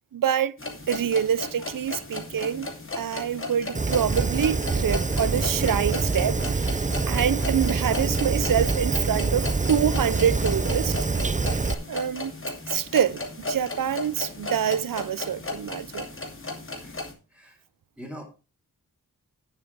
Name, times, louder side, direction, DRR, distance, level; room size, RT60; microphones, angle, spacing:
voice 1, 0.1-0.6 0.9-2.7 3.0-10.9 11.9-12.3 12.7-16.1, right 8 dB, 65° right, 0.6 m, -26 dB
sound 1, 0.6-17.1, left 2 dB, 35° left, 2.8 m, -36 dB
Fire, 3.7-11.7, right 3 dB, 20° right, 0.5 m, -26 dB
voice 2, 16.8-16.9 17.3-17.6 18.0-18.2, equal, 5° right, 3.8 m, -41 dB
9.2 x 7.6 x 4.7 m
wide cardioid pair, 105°, 35 cm